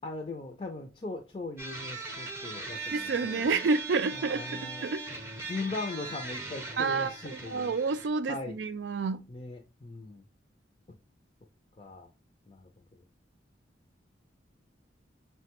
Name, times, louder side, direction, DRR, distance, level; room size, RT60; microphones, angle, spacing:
voice 1, 0.0-3.5 4.1-4.9 5.5-7.7 8.3-8.6 9.3-10.2 11.8-12.1 12.5-13.0, left 3 dB, 30° left, 0.5 m, -39 dB
sound 1, 1.6-8.1, right 3 dB, 15° right, 0.6 m, -40 dB
voice 2, 2.9-5.0 6.8-7.1 7.5-9.2, right 4 dB, 75° right, 0.4 m, -29 dB
5.7 x 2.2 x 2.9 m
head